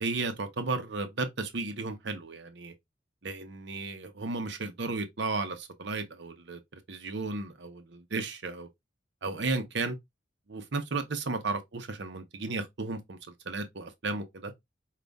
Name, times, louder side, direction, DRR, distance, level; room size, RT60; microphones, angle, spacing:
voice 1, 0.0-2.7 3.2-8.7 9.2-10.0 10.5-13.2 13.5-14.5, right 3 dB, 70° right, 0.8 m, -34 dB
5.2 x 2.5 x 3.4 m
head